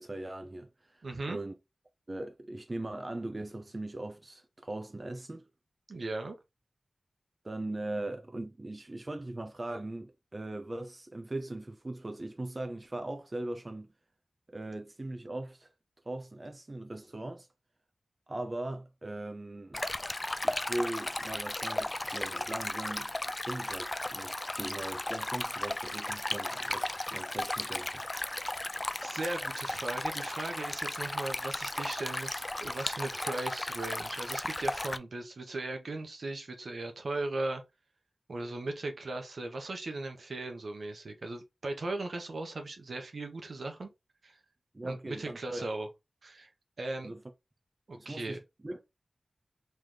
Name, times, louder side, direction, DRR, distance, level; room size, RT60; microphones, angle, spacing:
voice 1, 0.0-1.5 2.1-5.5 7.4-13.9 14.5-15.7 16.0-17.5 18.3-19.8 20.4-23.1 23.4-23.9 24.1-28.3 44.7-45.7 47.0-47.2 48.0-48.8, right 2 dB, 35° right, 0.6 m, -40 dB
voice 2, 1.0-1.4 5.9-6.4 29.0-37.6 38.3-43.9 44.2-44.4 44.8-45.9 46.2-46.5 46.8-47.2 47.9-48.4, right 2 dB, 70° right, 1.0 m, -38 dB
Stream, 19.7-35.0, left 1 dB, 25° left, 0.3 m, -35 dB
3.3 x 3.1 x 3.8 m
wide cardioid pair, 65°, 0 cm